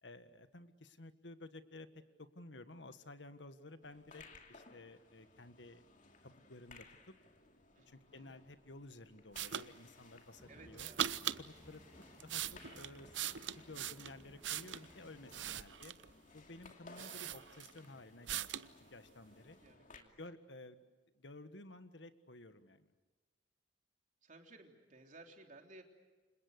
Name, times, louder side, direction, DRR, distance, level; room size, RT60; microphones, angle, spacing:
voice 1, 0.0-5.8 6.2-7.1 7.9-10.9 11.4-11.8 12.2-13.3 13.5-15.9 16.3-19.6 20.2-20.8 21.1-22.9, left 2 dB, 75° left, 10 dB, 1.6 m, -54 dB
sound 1, 3.8-20.0, left 3 dB, 45° left, 2.7 m, -61 dB
voice 2, 7.8-8.3 10.5-11.2 19.6-20.2 24.2-25.8, right 2 dB, 45° right, 3 dB, 3.6 m, -58 dB
sound 2, 9.4-9.7 10.8-11.4 12.0-14.9 15.3-16.1 16.6-16.7 17.0-17.9 18.3-18.7, right 10 dB, 90° right, 0.8 m, -40 dB
sound 3, 10.4-15.4, equal, 10° right, 2.3 m, -61 dB
29.5 x 26.5 x 6.6 m, 1.3 s
head